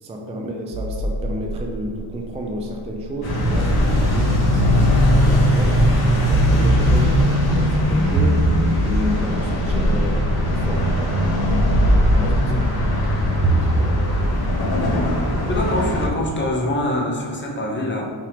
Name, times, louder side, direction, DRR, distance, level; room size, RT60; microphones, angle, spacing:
voice 1, 0.0-5.8 6.2-8.5 8.9-11.2 11.9-12.6 13.4-14.1, equal, 15° right, 1 dB, 0.3 m, -31 dB
sound 1, 0.7-3.5 4.6-5.7 6.3-7.4 8.2-10.4 11.7-12.8 13.4-15.6, right 1 dB, 75° right, 0.7 m, -23 dB
sound 2, 3.2-16.1, equal, 50° left, 1.4 m, -19 dB
voice 2, 15.5-18.1, left 1 dB, 25° left, 0 dB, 0.8 m, -24 dB
5.6 x 3.4 x 5.0 m, 2.1 s
wide cardioid pair, 175°, 46 cm